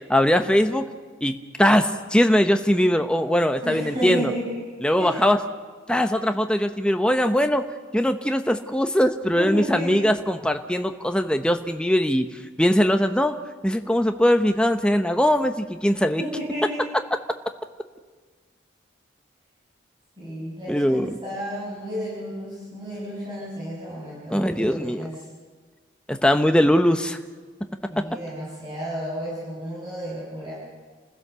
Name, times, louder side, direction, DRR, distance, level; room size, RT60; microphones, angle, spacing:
voice 1, 0.1-0.9 1.2-4.3 4.8-5.4 5.9-7.6 7.9-12.3 12.6-13.4 13.6-16.2 20.7-21.2 24.3-25.1 26.1-27.2, equal, 5° left, 7 dB, 0.8 m, -21 dB
voice 2, 3.6-4.7 5.0-5.2 9.4-9.9 16.2-16.8 20.2-25.1 27.9-30.5, equal, 25° right, -9 dB, 7.0 m, -32 dB
28.5 x 16.0 x 6.9 m, 1.5 s
head